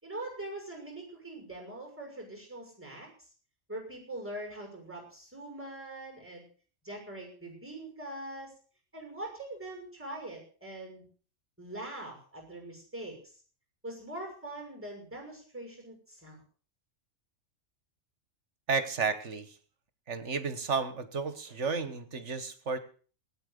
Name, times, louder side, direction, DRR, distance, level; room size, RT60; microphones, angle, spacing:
voice 1, 0.0-3.1 3.7-6.4 6.8-8.5 8.9-11.1 11.6-13.3 13.8-16.4, right 1 dB, 10° right, 2 dB, 6.2 m, -42 dB
voice 2, 18.7-19.6 20.1-22.8, right 5 dB, 65° right, 11 dB, 1.7 m, -32 dB
18.0 x 9.3 x 6.7 m, 0.41 s
omnidirectional pair, 1.3 m